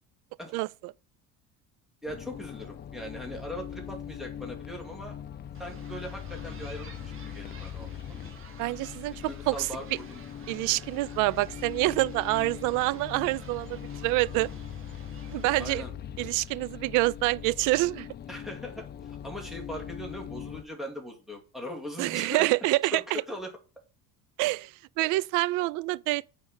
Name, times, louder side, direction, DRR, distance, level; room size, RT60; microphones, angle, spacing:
voice 1, 2.0-5.1 5.6-8.2 9.1-10.2 15.6-15.9 18.3-22.5 22.9-23.5, equal, ahead, 2.3 m, -40 dB
sound 1, 2.1-20.6, left 9 dB, 30° left, 0.7 m, -41 dB
sound 2, 5.5-15.8, right 5 dB, 40° right, 2.1 m, -52 dB
voice 2, 8.6-9.1 9.5-9.7 10.5-14.5 15.3-15.8 16.2-18.1 22.0-23.2 24.4-24.7 25.0-26.3, right 20 dB, 75° right, 0.5 m, -27 dB
9.4 x 4.6 x 7.2 m
cardioid pair, 145°, 32 cm